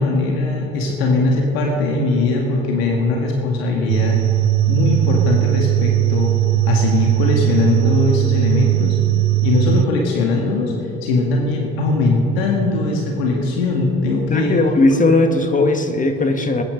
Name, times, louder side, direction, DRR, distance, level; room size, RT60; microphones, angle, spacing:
voice 1, 0.0-4.2 4.7-6.3 6.7-9.0 9.4-10.7 11.0-14.6, left 3 dB, 85° left, -1 dB, 2.1 m, -20 dB
sound 1, 3.9-9.9, right 17 dB, 70° right, 0.6 m, -18 dB
voice 2, 14.3-16.6, left 2 dB, 25° left, 6 dB, 1.8 m, -17 dB
21.0 x 9.5 x 5.2 m, 2.9 s
supercardioid pair, 80°, 30 cm